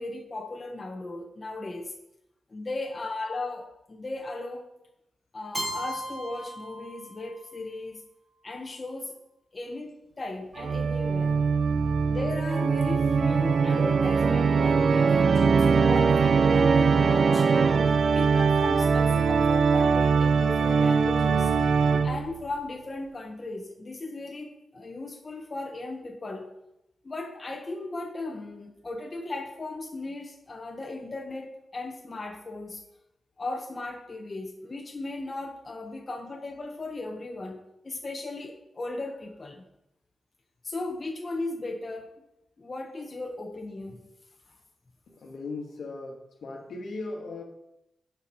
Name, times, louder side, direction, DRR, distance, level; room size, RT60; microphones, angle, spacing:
voice 1, 0.0-1.9 2.5-4.6 5.3-8.0 8.4-9.1 9.5-11.4 12.0-17.5 17.8-21.5 22.0-26.5 27.0-32.8 33.4-39.7 40.6-42.2 42.6-44.0, left 2 dB, 30° left, 2 dB, 0.8 m, -37 dB
Keyboard (musical), 5.5-7.5, equal, 10° right, 1.5 m, -36 dB
Organ, 10.6-22.4, right 5 dB, 60° right, 0.4 m, -22 dB
voice 2, 45.1-47.4, left 3 dB, 75° left, 1 dB, 1.3 m, -38 dB
7.1 x 4.5 x 5.4 m, 0.85 s
wide cardioid pair, 125°, 0 cm